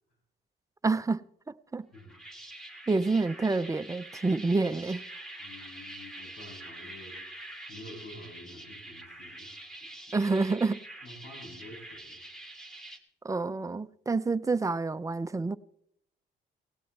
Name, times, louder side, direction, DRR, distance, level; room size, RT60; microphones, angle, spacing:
voice 1, 0.8-1.2 1.5-1.9 2.9-5.0 10.1-10.8 13.2-15.6, right 3 dB, 15° right, 0.5 m, -28 dB
sound 1, 1.9-13.0, right 1 dB, ahead, 2.1 m, -45 dB
voice 2, 5.4-7.2 7.7-9.7 11.0-12.2, left 1 dB, 85° left, 7.7 m, -48 dB
17.5 x 17.0 x 3.3 m
cardioid pair, 90°, 20 cm